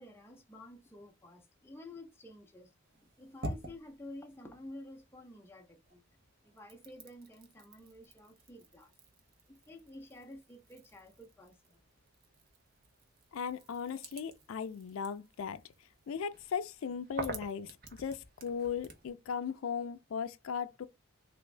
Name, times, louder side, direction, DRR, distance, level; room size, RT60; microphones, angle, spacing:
voice 1, 0.0-6.0 6.4-8.9 9.5-11.8, left 1 dB, 10° left, 0.5 m, -51 dB
sound 1, 2.8-5.5 5.8-19.1, right 2 dB, 45° right, 0.7 m, -49 dB
voice 2, 13.3-15.6 16.1-20.9, left 7 dB, 80° left, 0.4 m, -37 dB
3.4 x 2.5 x 3.2 m
head